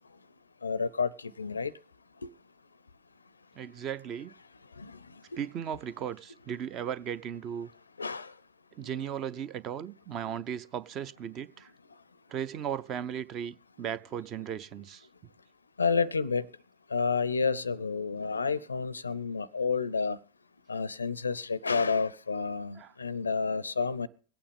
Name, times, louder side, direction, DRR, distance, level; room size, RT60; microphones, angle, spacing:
voice 1, 0.6-1.7 4.8-5.2 8.0-8.3 15.8-16.5 16.9-20.2 20.7-24.1, left 5 dB, 75° left, 0.5 m, -30 dB
voice 2, 3.6-4.3 5.4-7.7 8.8-11.7 12.3-15.1 22.8-22.9, right 9 dB, 35° right, 0.6 m, -36 dB
23.5 x 8.8 x 3.5 m
figure-of-eight pair, 90°, 0 cm